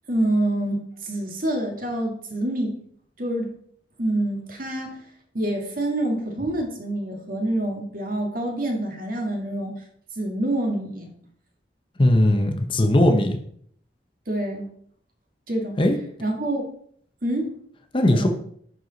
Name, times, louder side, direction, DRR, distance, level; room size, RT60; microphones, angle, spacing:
voice 1, 0.1-2.8 3.2-3.5 4.0-5.1 5.3-9.7 10.2-11.1 14.3-14.7 15.5-15.8 16.2-16.7 17.2-17.5 18.1-18.3, right 1 dB, 50° right, 2 dB, 1.8 m, -26 dB
voice 2, 12.0-13.4 15.8-16.0 17.9-18.3, left 1 dB, 30° left, 5 dB, 0.8 m, -18 dB
10.0 x 4.7 x 4.0 m, 0.64 s
head